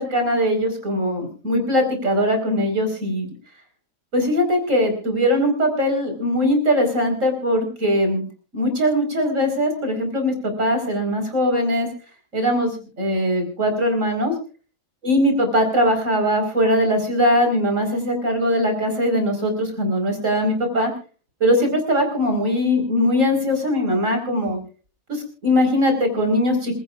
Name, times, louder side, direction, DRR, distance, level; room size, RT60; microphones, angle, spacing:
voice 1, 0.0-3.3 4.1-8.2 8.5-11.9 12.3-12.7 13.0-14.3 15.0-20.9 21.4-24.6 25.1-26.8, equal, 75° right, 4 dB, 5.1 m, -20 dB
26.5 x 16.5 x 2.5 m, 0.37 s
omnidirectional pair, 1.4 m